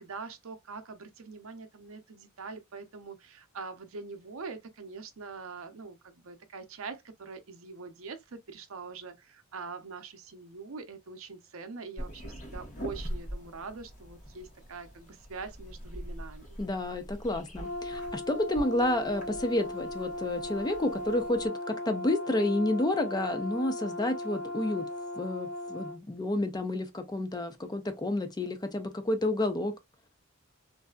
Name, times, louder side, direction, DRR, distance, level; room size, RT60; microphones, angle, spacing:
voice 1, 0.0-16.6, right 4 dB, 70° right, 0.6 m, -43 dB
sound 1, 12.0-21.5, equal, 35° left, 1.1 m, -43 dB
voice 2, 16.6-24.9 25.2-29.7, left 1 dB, 20° left, 0.5 m, -30 dB
Brass instrument, 17.6-26.0, left 1 dB, 80° left, 0.8 m, -37 dB
3.2 x 2.6 x 2.2 m
head